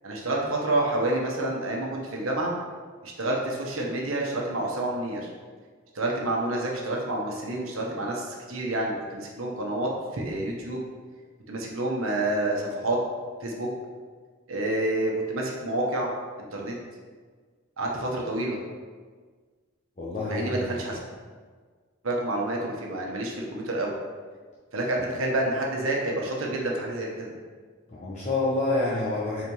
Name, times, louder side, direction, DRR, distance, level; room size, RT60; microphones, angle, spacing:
voice 1, 0.0-2.5 3.0-5.3 5.9-10.8 11.5-13.0 13.4-13.7 14.5-16.1 16.5-16.7 17.8-18.6 20.3-21.0 22.0-23.9 24.7-27.3, right 1 dB, 80° right, -1 dB, 1.1 m, -28 dB
voice 2, 20.0-20.8 28.0-29.4, left 2 dB, 35° left, -8 dB, 0.9 m, -27 dB
4.7 x 4.1 x 5.4 m, 1.5 s
head